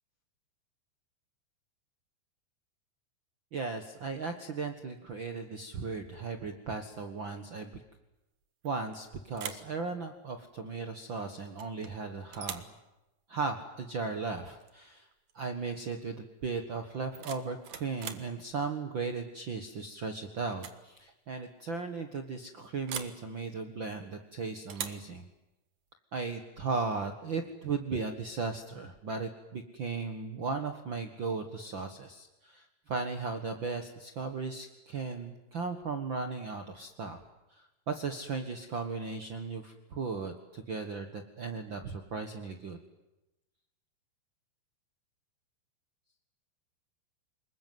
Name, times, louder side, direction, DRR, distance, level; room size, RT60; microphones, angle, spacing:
voice 1, 3.5-7.8 8.6-12.6 13.3-15.1 15.3-25.2 26.1-37.2 37.5-42.8, right 4 dB, 70° right, 7 dB, 1.1 m, -36 dB
sound 1, 8.6-9.0 9.3-9.7 11.6-11.9 12.3-12.8 14.6-14.8 15.1-15.5 16.9-18.3 19.8-20.1 20.5-20.8 21.1-21.2 22.9-23.2 24.7-25.1, right 8 dB, 55° right, 2.2 m, -42 dB
26.0 x 22.0 x 9.4 m, 0.97 s
omnidirectional pair, 4.8 m